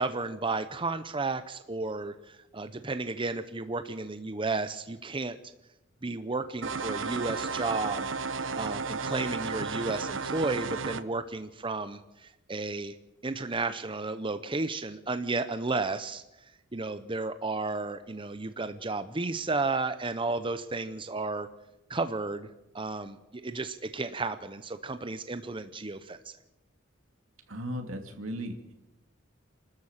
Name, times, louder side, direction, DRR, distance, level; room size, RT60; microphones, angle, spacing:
voice 1, 0.0-5.4 6.0-8.1 8.5-12.9 13.2-16.2 16.7-21.5 21.9-22.5 22.7-26.3, right 3 dB, 25° right, 10 dB, 0.7 m, -33 dB
sound 1, 6.6-11.0, right 4 dB, 65° right, 0.9 m, -33 dB
voice 2, 27.5-28.7, equal, 85° right, 4 dB, 2.7 m, -36 dB
27.5 x 13.0 x 7.4 m, 0.97 s
head